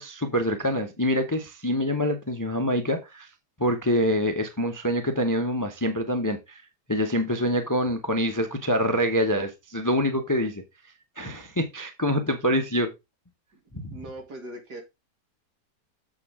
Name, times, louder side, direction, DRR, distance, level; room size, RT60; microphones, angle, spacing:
voice 1, 0.0-3.3 3.6-6.6 6.9-10.6 11.2-12.9 13.7-13.9, equal, 15° left, 0.6 m, -25 dB
voice 2, 13.9-14.8, right 1 dB, 70° right, 2.7 m, -39 dB
7.2 x 6.9 x 3.6 m
omnidirectional pair, 1.8 m